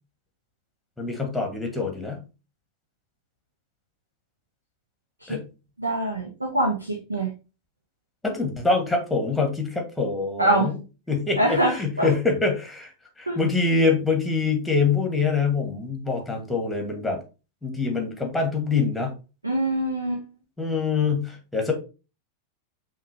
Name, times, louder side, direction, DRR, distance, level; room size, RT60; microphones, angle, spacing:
voice 1, 1.0-2.2 5.3-5.4 8.2-10.7 11.1-12.9 13.2-17.2 17.6-19.1 20.6-21.7, left 4 dB, 5° left, 3 dB, 1.2 m, -25 dB
voice 2, 5.8-7.3 10.4-10.7 11.4-12.1 13.3-13.4 19.4-20.2, right 1 dB, 80° right, 0 dB, 0.8 m, -24 dB
5.6 x 2.5 x 3.2 m, 0.31 s
figure-of-eight pair, 90°, 0 cm